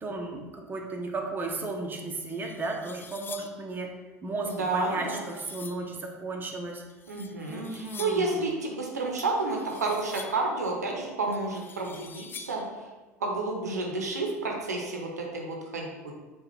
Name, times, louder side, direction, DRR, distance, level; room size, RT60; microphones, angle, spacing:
voice 1, 0.0-3.9 4.2-6.8 7.5-8.4, right 3 dB, 20° right, 1 dB, 0.8 m, -34 dB
sound 1, 1.8-1.9 2.3-3.7 4.5-5.9 6.9-8.4 9.2-10.5 11.3-12.7, left 6 dB, 25° left, 0.4 m, -46 dB
voice 2, 4.4-5.2 7.1-12.9 13.2-16.1, right 3 dB, 85° right, 0 dB, 0.7 m, -30 dB
4.9 x 2.4 x 4.4 m, 1.2 s
hypercardioid pair, 70°, 9 cm